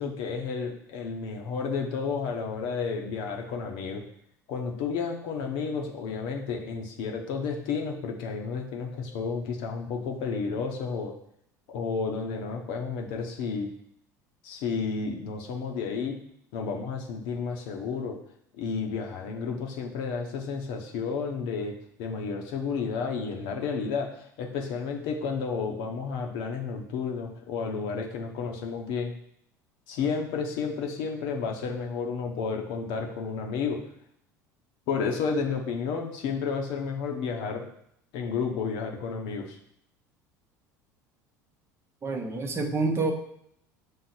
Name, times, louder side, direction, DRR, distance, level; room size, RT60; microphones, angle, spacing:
voice 1, 0.0-4.0 4.5-11.1 11.7-13.7 14.4-16.2 16.5-18.2 18.6-29.1 29.9-33.8 34.9-37.7 38.1-39.6, left 5 dB, 55° left, 1 dB, 1.1 m, -31 dB
voice 2, 42.0-43.1, right 3 dB, 25° right, 4 dB, 0.9 m, -27 dB
6.8 x 3.7 x 4.4 m, 0.71 s
figure-of-eight pair, 70°, 10 cm